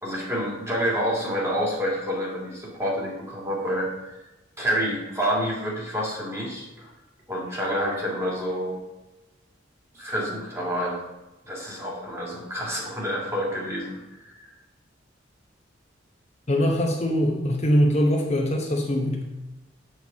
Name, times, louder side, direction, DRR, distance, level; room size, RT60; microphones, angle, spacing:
voice 1, 0.0-4.2 4.6-6.9 7.3-8.8 9.9-11.0 11.4-14.5, equal, 15° right, -4 dB, 2.1 m, -28 dB
voice 2, 16.5-19.2, equal, 35° left, 0 dB, 0.9 m, -22 dB
8.1 x 4.6 x 7.0 m, 1.0 s
head